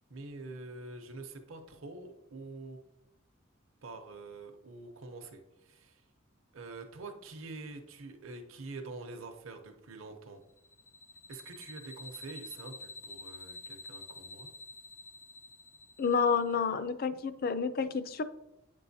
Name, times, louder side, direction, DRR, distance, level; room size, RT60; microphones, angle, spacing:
voice 1, 0.1-2.8 3.8-6.0 6.5-10.4 11.3-14.5, right 3 dB, 70° right, 4 dB, 0.7 m, -46 dB
sound 1, 10.6-16.5, left 2 dB, 65° left, 1.0 m, -49 dB
voice 2, 16.0-18.2, left 5 dB, 45° left, 12 dB, 0.4 m, -29 dB
8.4 x 5.4 x 2.7 m, 0.87 s
head